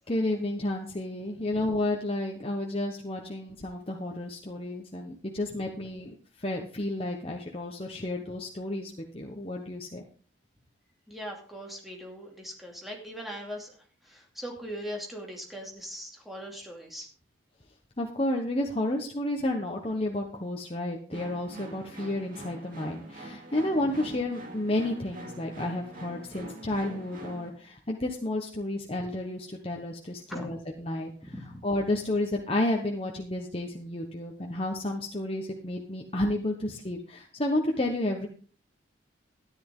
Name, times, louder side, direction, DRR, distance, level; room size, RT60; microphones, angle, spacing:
voice 1, 0.1-10.0 18.0-31.3 31.6-38.3, left 1 dB, 30° left, 1 dB, 1.1 m, -31 dB
voice 2, 11.1-17.1 30.3-30.5 31.2-31.6, equal, ahead, -1 dB, 2.6 m, -40 dB
sound 1, 21.1-27.5, right 1 dB, 45° right, 2.4 m, -44 dB
13.5 x 10.5 x 3.7 m, 0.42 s
head